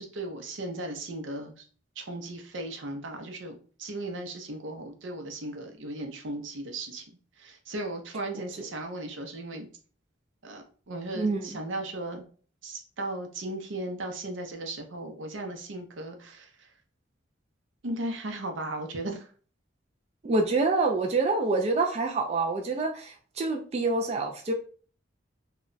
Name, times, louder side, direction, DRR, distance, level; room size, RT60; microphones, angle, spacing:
voice 1, 0.0-1.6 2.0-3.5 3.8-7.0 7.4-9.7 10.4-12.2 12.6-16.5 17.8-19.2, right 2 dB, 85° right, 4 dB, 0.7 m, -36 dB
voice 2, 11.1-11.5 20.2-24.5, right 3 dB, 35° right, 2 dB, 0.3 m, -26 dB
2.3 x 2.1 x 3.8 m, 0.41 s
head